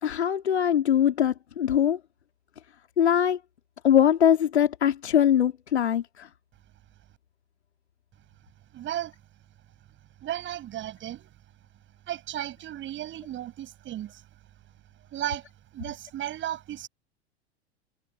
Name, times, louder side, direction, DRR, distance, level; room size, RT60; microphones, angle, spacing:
voice 1, 0.0-2.0 3.0-3.4 3.8-6.3, left 9 dB, 80° left, 3.0 m, -22 dB
voice 2, 8.7-9.1 10.2-11.3 12.1-14.2 15.1-15.4 15.7-16.9, right 12 dB, 35° right, 7.9 m, -34 dB
figure-of-eight pair, 90°, 33 cm